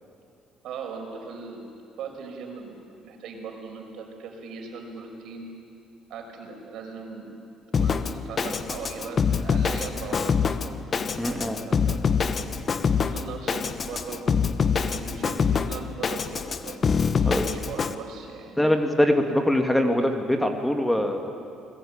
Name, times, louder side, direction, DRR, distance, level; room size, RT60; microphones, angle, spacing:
voice 1, 0.6-1.7 2.0-5.5 6.1-7.3 7.8-10.8 11.2-12.0 12.3-14.4 14.7-18.6, right 5 dB, 70° right, 3 dB, 5.3 m, -39 dB
Drum kit, 7.7-17.9, left 6 dB, 40° left, 1.1 m, -25 dB
voice 2, 11.2-11.6 17.3-17.4 18.6-21.3, left 1 dB, 5° left, 5 dB, 2.2 m, -23 dB
28.5 x 20.5 x 8.8 m, 2.5 s
cardioid pair, 100°, 0 cm